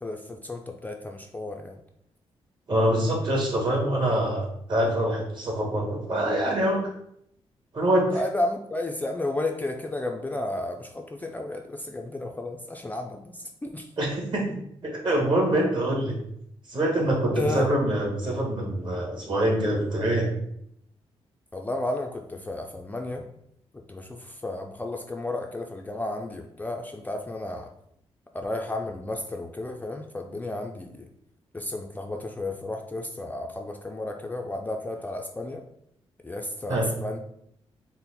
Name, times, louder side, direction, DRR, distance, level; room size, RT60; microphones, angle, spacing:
voice 1, 0.0-1.8 8.1-13.9 17.3-17.7 21.5-23.2 23.9-27.7 28.3-31.1 31.5-35.6 36.2-37.2, left 2 dB, 15° left, 2 dB, 0.3 m, -32 dB
voice 2, 2.7-6.8 7.7-8.2 14.0-16.2 16.7-20.3 36.7-36.9, right 1 dB, 45° right, -1 dB, 1.2 m, -25 dB
4.2 x 2.0 x 4.0 m, 0.74 s
cardioid pair, 95°, 11 cm